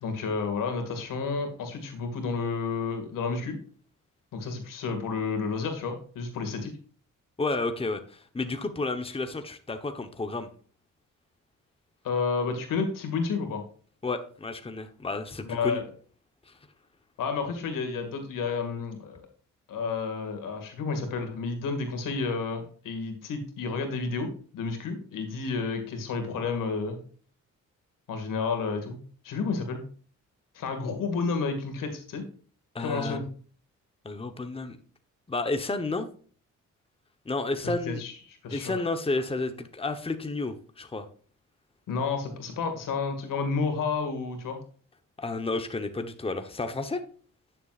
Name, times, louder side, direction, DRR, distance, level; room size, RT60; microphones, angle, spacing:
voice 1, 0.0-3.6 4.3-6.7 12.0-13.6 15.4-15.9 17.2-19.2 19.7-27.0 28.1-29.0 29.2-29.8 30.5-32.2 32.8-33.2 37.6-38.8 41.9-44.6, left 4 dB, 85° left, 5 dB, 2.1 m, -31 dB
voice 2, 7.4-10.5 14.0-15.8 16.5-16.6 32.7-33.2 34.0-34.8 35.3-36.1 37.2-38.0 38.5-41.1 45.2-47.0, left 3 dB, 15° left, 7 dB, 1.0 m, -31 dB
11.0 x 7.0 x 2.5 m, 0.43 s
cardioid pair, 70°, 32 cm